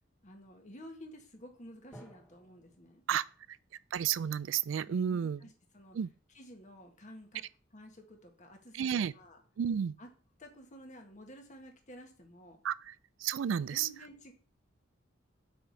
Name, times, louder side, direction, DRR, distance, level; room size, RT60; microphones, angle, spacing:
voice 1, 0.2-3.0 4.9-6.0 6.3-7.4 7.7-9.4 10.0-10.1 10.4-12.6 13.5-14.3, equal, 40° left, 1.6 m, -52 dB
Drum, 1.9-5.6, equal, 10° left, 2.0 m, -59 dB
voice 2, 3.9-5.4 5.9-6.1 8.7-9.1 9.6-9.9 12.6-12.9 13.2-13.9, right 8 dB, 80° right, 0.3 m, -31 dB
6.2 x 4.9 x 6.8 m
head